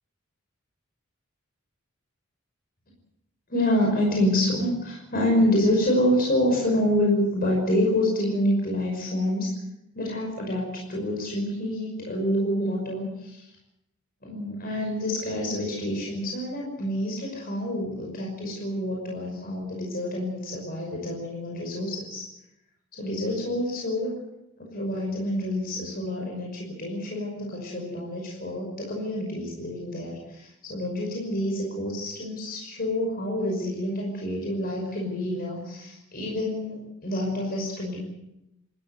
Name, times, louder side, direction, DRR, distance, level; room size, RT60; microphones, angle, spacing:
voice 1, 3.5-9.5 9.9-13.5 14.2-22.3 22.9-24.2 24.6-38.0, left 1 dB, 45° left, 0 dB, 5.7 m, -27 dB
27.0 x 14.5 x 7.9 m, 0.87 s
head